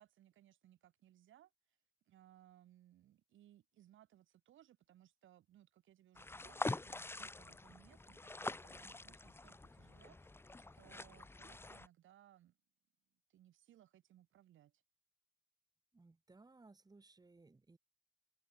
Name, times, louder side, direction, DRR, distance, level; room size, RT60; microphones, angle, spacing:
voice 1, 0.0-1.8 2.1-10.3 10.6-12.6 13.3-14.8, right 12 dB, 75° right, 6.2 m, -66 dB
sound 1, 6.1-11.9, left 2 dB, 10° left, 0.7 m, -45 dB
voice 2, 15.9-17.8, right 3 dB, 20° right, 2.5 m, -63 dB
cardioid pair, 90°, 20 cm